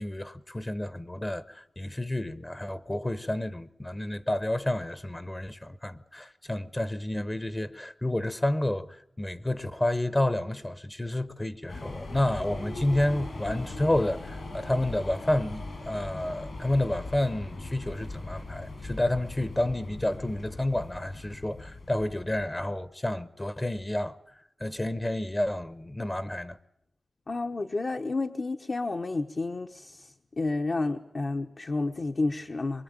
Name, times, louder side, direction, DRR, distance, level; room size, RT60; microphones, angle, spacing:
voice 1, 0.0-24.1 24.6-26.6, left 1 dB, 20° left, 0.9 m, -30 dB
sound 1, 11.7-22.8, left 2 dB, 70° left, 5.7 m, -40 dB
voice 2, 27.3-30.1 30.4-32.8, left 3 dB, 50° left, 1.1 m, -30 dB
24.0 x 22.0 x 8.9 m
wide cardioid pair, 90°, 0 cm